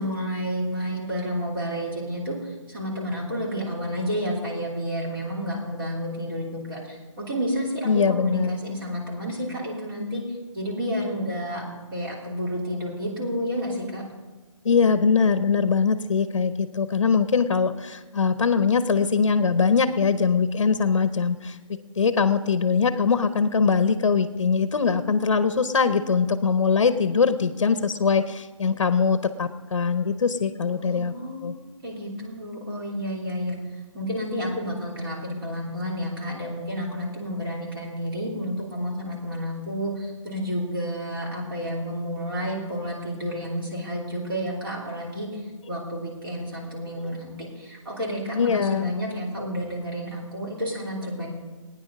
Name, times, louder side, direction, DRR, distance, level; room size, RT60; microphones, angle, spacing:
voice 1, 0.0-10.2 10.5-11.6 11.9-14.0 30.8-33.5 33.9-45.4 45.7-51.3, equal, 45° right, -3 dB, 3.2 m, -30 dB
voice 2, 7.8-8.6 14.6-31.1 31.4-31.5 47.0-47.1 48.3-48.9, left 5 dB, 60° left, 11 dB, 0.7 m, -22 dB
17.0 x 9.7 x 5.3 m, 1.3 s
hypercardioid pair, 175°, 17 cm